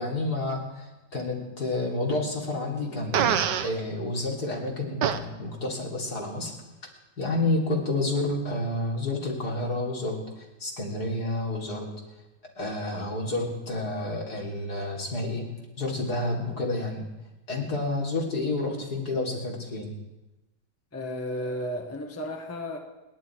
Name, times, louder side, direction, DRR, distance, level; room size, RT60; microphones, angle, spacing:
voice 1, 0.0-6.5 7.2-11.9 12.6-17.0 17.5-19.9, left 2 dB, 60° left, 3.8 m, -30 dB
Fart, 3.1-3.7 5.0-5.2, right 8 dB, 75° right, 1.5 m, -24 dB
voice 2, 20.9-22.8, left 1 dB, 10° left, 1.4 m, -33 dB
29.0 x 11.0 x 4.6 m
omnidirectional pair, 1.9 m